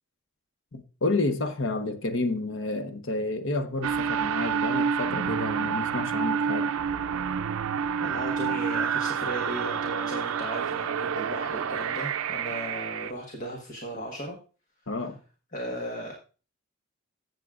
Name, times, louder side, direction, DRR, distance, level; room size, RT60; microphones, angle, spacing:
voice 1, 0.7-6.8 14.9-15.2, left 2 dB, 70° left, 1.0 m, -30 dB
sound 1, 3.8-13.1, right 7 dB, 90° right, 0.5 m, -28 dB
voice 2, 8.0-14.4 15.5-16.1, right 1 dB, 40° left, 1.4 m, -36 dB
15.0 x 7.6 x 2.5 m
head